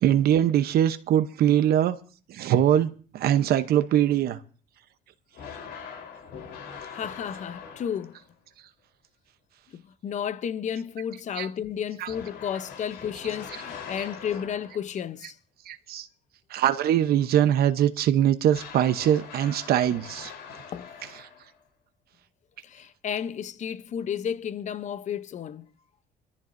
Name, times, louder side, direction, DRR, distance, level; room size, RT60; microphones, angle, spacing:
voice 1, 0.0-2.0 2.3-4.4 11.4-11.5 12.0-12.1 15.7-16.1 16.5-20.3, right 11 dB, 65° right, 0.9 m, -22 dB
sound 1, 5.3-8.3 12.1-15.0 18.5-21.6, left 6 dB, 75° left, 3.9 m, -42 dB
voice 2, 6.9-8.2 9.7-15.4 20.7-20.9 22.6-25.7, left 8 dB, 45° left, 0.8 m, -32 dB
24.5 x 14.0 x 2.7 m
cardioid pair, 110°, 17 cm